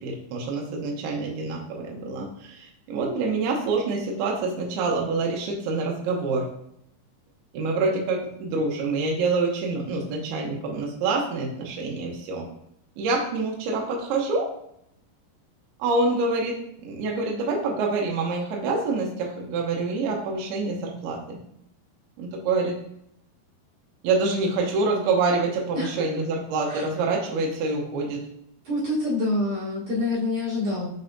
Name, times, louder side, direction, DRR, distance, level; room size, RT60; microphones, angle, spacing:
voice 1, 0.0-6.4 7.5-12.5 13.0-14.5 15.8-16.6 16.8-21.4 22.2-22.7 24.0-28.2, right 3 dB, 75° right, -1 dB, 2.9 m, -26 dB
voice 2, 28.6-30.9, left 2 dB, 55° right, -8 dB, 3.1 m, -26 dB
6.7 x 5.4 x 2.7 m, 0.74 s
omnidirectional pair, 4.7 m